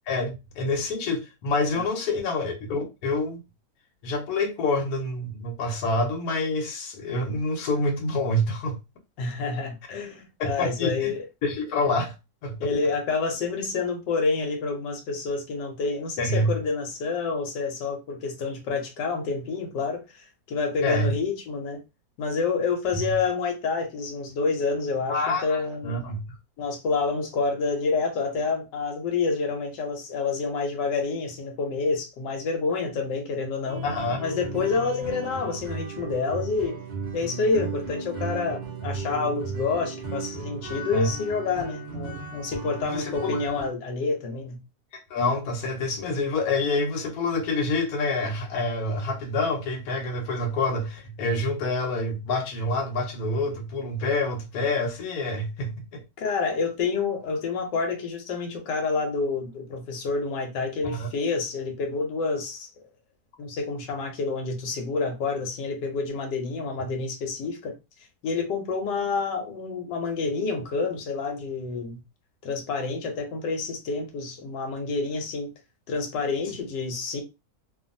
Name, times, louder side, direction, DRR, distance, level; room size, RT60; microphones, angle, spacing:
voice 1, 0.1-3.4 4.0-8.7 10.4-11.1 11.4-12.1 12.4-12.7 16.2-16.5 20.8-21.1 25.1-26.4 33.8-34.2 40.9-41.1 42.8-43.4 44.9-56.0 60.8-61.1, left 2 dB, 65° left, 1.2 m, -27 dB
voice 2, 9.2-11.2 12.6-21.8 22.2-26.0 26.6-33.8 34.2-36.8 37.1-44.6 56.2-62.7 63.4-67.7 68.2-72.0 72.4-75.5 75.9-77.2, left 4 dB, 85° left, 1.3 m, -28 dB
sound 1, 33.7-43.7, right 4 dB, 70° right, 0.4 m, -35 dB
2.7 x 2.5 x 2.5 m
omnidirectional pair, 1.8 m